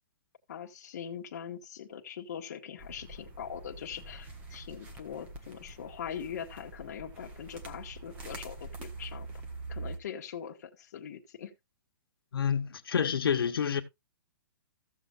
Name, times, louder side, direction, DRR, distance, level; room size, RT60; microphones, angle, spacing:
voice 1, 0.5-9.3 9.7-11.5, left 8 dB, 45° left, 1.5 m, -42 dB
sound 1, 2.8-10.0, right 3 dB, 10° right, 1.1 m, -44 dB
voice 2, 12.3-13.8, left 7 dB, 80° left, 1.3 m, -28 dB
16.0 x 6.9 x 2.4 m
hypercardioid pair, 175°, 12 cm